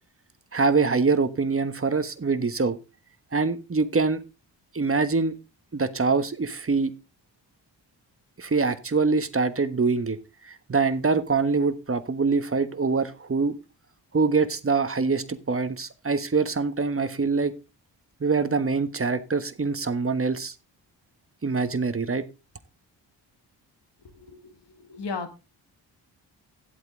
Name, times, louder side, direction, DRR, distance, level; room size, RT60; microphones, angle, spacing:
voice 1, 0.5-2.8 3.3-4.2 4.7-5.4 5.7-6.9 8.4-10.2 10.4-13.5 14.1-17.5 18.2-20.5 21.4-22.2, right 4 dB, 30° right, 11 dB, 1.3 m, -24 dB
voice 2, 24.2-25.3, left 4 dB, 65° left, 8 dB, 1.9 m, -36 dB
11.5 x 8.0 x 3.8 m, 0.28 s
supercardioid pair, 55°, 44 cm